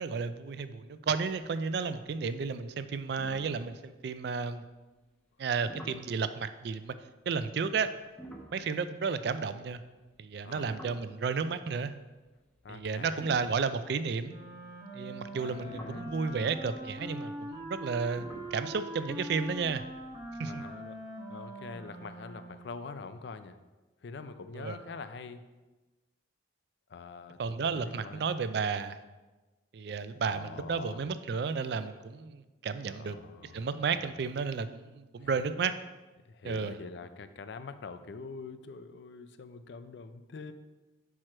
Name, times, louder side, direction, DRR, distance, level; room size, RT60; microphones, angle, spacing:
voice 1, 0.0-4.6 5.4-6.9 7.3-7.9 8.5-9.8 10.2-11.9 12.7-14.4 14.9-18.3 18.5-19.8 20.4-20.7 24.5-24.8 27.4-29.0 29.7-33.2 33.4-35.7 36.4-36.8, right 5 dB, 55° right, 12 dB, 0.3 m, -32 dB
sound 1, 3.2-4.5 5.7-6.1 8.0-11.6 12.4-14.6 15.2-20.6, right 1 dB, 5° left, 0.6 m, -51 dB
voice 2, 12.6-13.2 15.4-16.1 20.4-21.0 21.3-23.6 24.0-25.4 26.9-28.3 30.2-31.0 32.9-34.1 35.2-35.3 36.3-40.5, left 4 dB, 60° left, 10 dB, 0.4 m, -45 dB
Wind instrument woodwind instrument, 14.2-22.8, equal, 20° right, 1.1 m, -43 dB
5.9 x 4.7 x 4.4 m, 1.2 s
head